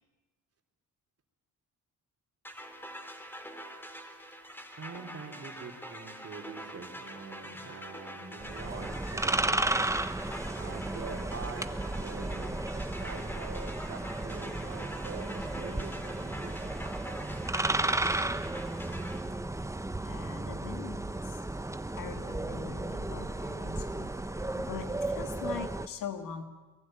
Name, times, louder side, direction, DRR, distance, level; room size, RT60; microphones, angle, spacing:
sound 1, 2.4-19.2, equal, 5° left, 3.8 m, -45 dB
voice 1, 4.8-9.9 10.6-16.8, right 4 dB, 45° right, 3 dB, 3.8 m, -45 dB
sound 2, 8.4-25.9, right 2 dB, 10° right, 1.1 m, -34 dB
voice 2, 20.1-21.1 22.0-24.1 24.5-26.4, left 7 dB, 80° left, 7 dB, 2.5 m, -42 dB
23.0 x 22.0 x 9.3 m, 1.2 s
cardioid pair, 75°, 32 cm